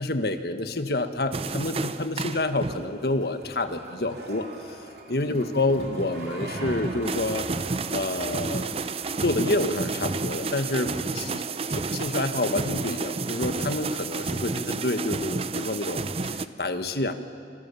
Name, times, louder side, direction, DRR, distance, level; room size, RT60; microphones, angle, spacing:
voice 1, 0.0-4.5 5.1-7.5 7.9-8.7 9.2-17.1, left 2 dB, 60° left, 8 dB, 1.6 m, -28 dB
sound 1, 1.1-10.4, right 1 dB, 60° right, 3.9 m, -44 dB
sound 2, 1.3-3.0 3.6-3.8 5.4-16.5, right 3 dB, 35° right, 0.6 m, -31 dB
28.0 x 27.0 x 7.2 m, 2.3 s
head